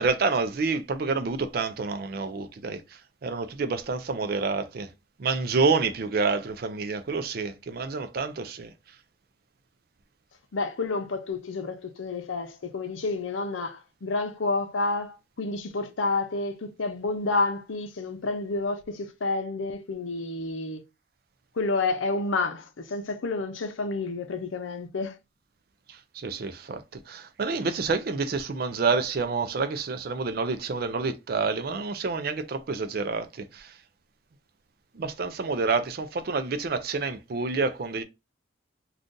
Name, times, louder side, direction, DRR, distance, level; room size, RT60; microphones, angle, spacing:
voice 1, 0.0-2.8 3.2-4.9 5.2-8.7 25.9-33.7 34.9-38.0, right 4 dB, 50° right, 0.4 m, -28 dB
voice 2, 10.5-20.8 21.6-25.2, left 3 dB, 90° left, 0.6 m, -29 dB
2.6 x 2.4 x 3.6 m
head